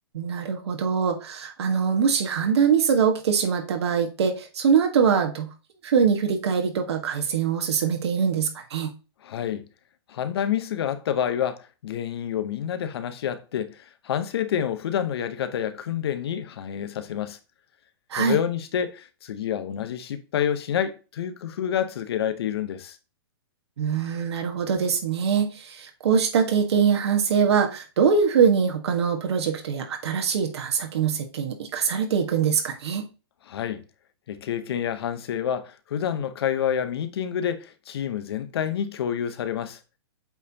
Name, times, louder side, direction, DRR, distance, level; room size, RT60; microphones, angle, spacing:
voice 1, 0.1-5.5 5.8-8.9 18.1-18.4 23.8-33.1, right 6 dB, 75° right, 1.5 m, -23 dB
voice 2, 9.2-9.6 10.1-17.4 18.1-23.0 33.5-33.8 34.3-39.8, left 9 dB, 65° left, 0.9 m, -28 dB
8.1 x 4.3 x 2.8 m
hypercardioid pair, 155°, 14 cm